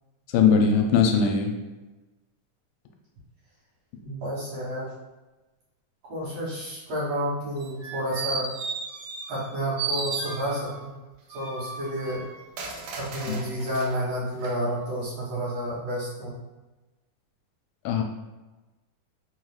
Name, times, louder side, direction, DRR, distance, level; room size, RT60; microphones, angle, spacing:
voice 1, 0.3-1.5 17.9-18.0, left 6 dB, 85° left, 3 dB, 2.0 m, -20 dB
voice 2, 4.0-4.9 6.1-8.5 9.3-10.9 11.3-12.2 12.9-16.4, equal, 65° right, -9 dB, 1.9 m, -30 dB
sound 1, 7.6-9.5 9.8-10.8 11.3-13.9 14.4-14.5, right 4 dB, 85° right, 1.3 m, -34 dB
4.9 x 2.3 x 3.1 m, 1.1 s
omnidirectional pair, 3.5 m